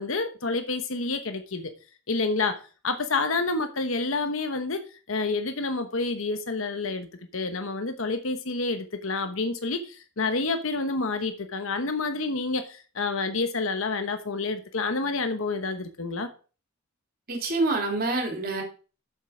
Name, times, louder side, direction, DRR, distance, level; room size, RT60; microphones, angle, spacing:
voice 1, 0.0-1.7 2.1-16.3, left 3 dB, 65° left, 1.1 m, -29 dB
voice 2, 17.3-18.6, right 2 dB, 45° right, 2.8 m, -26 dB
7.4 x 7.4 x 4.9 m
head